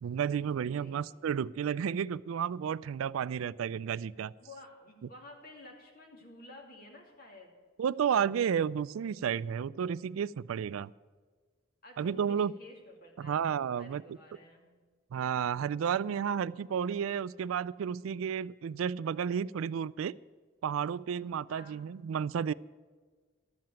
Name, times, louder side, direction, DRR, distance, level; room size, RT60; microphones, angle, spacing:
voice 1, 0.0-4.3 7.8-10.9 12.0-12.5 13.2-14.0 15.1-20.2 20.6-22.5, right 7 dB, 90° right, 20 dB, 0.3 m, -32 dB
voice 2, 0.6-1.0 4.4-7.5 11.8-13.4 13.8-14.8 21.5-21.8, left 2 dB, 45° left, 1 dB, 2.6 m, -52 dB
12.5 x 7.6 x 9.0 m, 1.5 s
head